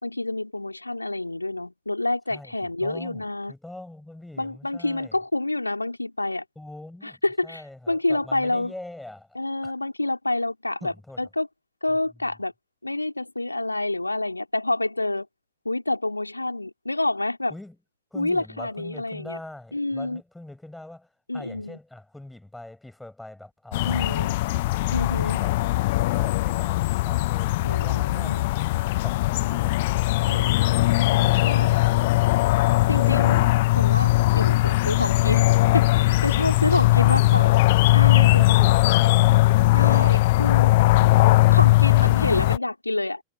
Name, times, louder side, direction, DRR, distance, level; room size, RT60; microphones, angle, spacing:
voice 1, 0.0-3.5 4.4-6.4 7.0-8.7 9.3-11.5 11.8-12.5 12.8-15.3 15.6-17.5 18.1-19.4 19.7-20.2 21.3-21.8 23.8-24.4 24.9-25.4 27.6-28.5 30.3-31.7 32.9-37.6 37.9-38.7 39.7-40.7 41.5-43.2, left 2 dB, 85° left, 4.1 m, -28 dB
voice 2, 2.8-5.2 6.6-9.3 9.6-9.7 10.8-11.2 17.5-17.8 18.1-25.5 25.9-30.5 38.1-40.1, left 1 dB, 5° left, 6.3 m, -43 dB
sound 1, 23.7-42.6, left 19 dB, 50° left, 1.1 m, -19 dB
figure-of-eight pair, 90°, 0 cm